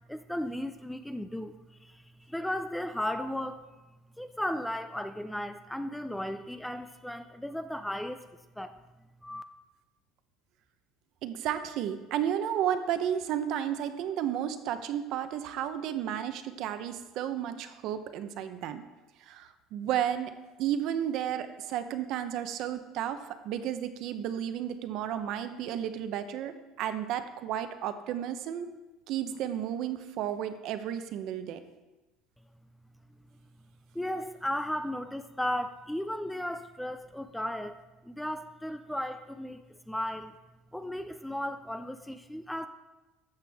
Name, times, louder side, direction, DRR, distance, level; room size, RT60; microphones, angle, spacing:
voice 1, 0.1-3.7 4.2-8.2 8.6-8.7 9.2-9.4 33.9-37.8 38.0-40.4 40.7-42.7, left 1 dB, 5° left, 10 dB, 0.3 m, -35 dB
voice 2, 11.2-18.8 19.2-20.3 20.6-26.5 26.8-28.7 29.1-31.6, right 10 dB, 55° right, 10 dB, 0.7 m, -32 dB
13.0 x 7.7 x 3.5 m, 1.1 s
cardioid pair, 165°, 0 cm